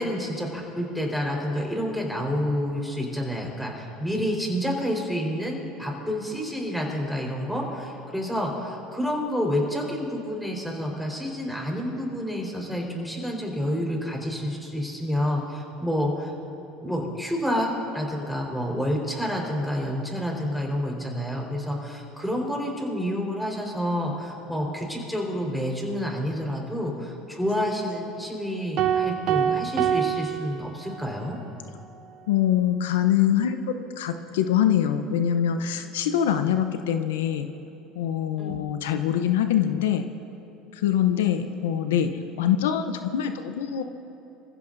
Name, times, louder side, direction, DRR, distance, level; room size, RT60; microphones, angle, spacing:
voice 1, 0.0-16.3 16.8-31.4 38.4-38.6, equal, ahead, -1 dB, 4.4 m, -29 dB
sound 1, 28.8-31.2, right 9 dB, 55° right, 0.9 m, -26 dB
voice 2, 32.3-33.6 34.0-37.5 37.9-40.1 40.7-43.8, left 10 dB, 85° left, 8 dB, 0.7 m, -24 dB
26.5 x 15.5 x 2.7 m, 2.9 s
supercardioid pair, 90°, 0 cm